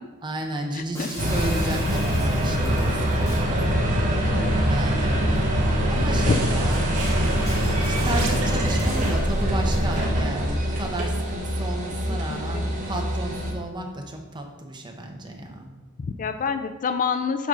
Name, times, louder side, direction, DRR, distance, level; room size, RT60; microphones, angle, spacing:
voice 1, 0.2-4.3 4.7-6.9 7.7-15.7, right 1 dB, 20° right, 3 dB, 0.9 m, -33 dB
voice 2, 0.7-1.1 4.3-4.6 6.3-6.4 12.3-12.6 16.0-17.5, left 6 dB, 35° left, 9 dB, 0.4 m, -27 dB
Shatter, 0.9-3.6 5.4-5.5 5.9-6.1 6.7-8.9 9.7-10.0, left 1 dB, 15° left, 1.8 m, -41 dB
sound 1, 1.2-13.5, equal, 35° right, 1.5 m, -23 dB
sound 2, 6.8-9.7, right 3 dB, 80° right, 1.4 m, -35 dB
8.4 x 5.4 x 3.8 m, 1.2 s
head